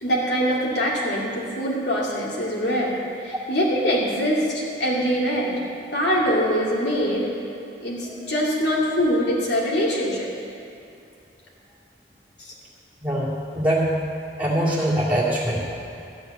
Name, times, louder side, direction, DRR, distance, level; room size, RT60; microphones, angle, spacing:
voice 1, 0.0-5.6 5.9-7.3 7.8-10.3 12.4-12.5, equal, 65° left, -4 dB, 2.5 m, -23 dB
voice 2, 13.0-13.9 14.4-15.7, right 1 dB, 10° right, -6 dB, 2.2 m, -23 dB
13.5 x 5.2 x 9.2 m, 2.6 s
head